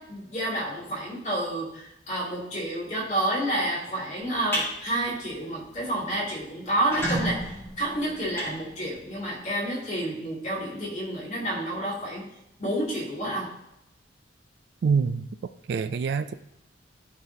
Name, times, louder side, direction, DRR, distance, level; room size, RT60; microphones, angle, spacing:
voice 1, 0.0-12.2 12.6-13.6, right 1 dB, 40° left, 2.7 m, -29 dB
sound 1, 4.2-4.7 5.1-5.4 5.7-5.8 6.1-6.2 6.7-9.2, equal, 15° left, 1.7 m, -31 dB
voice 2, 14.8-15.3 15.7-16.3, right 5 dB, 60° right, 0.3 m, -25 dB
12.0 x 4.0 x 2.8 m
head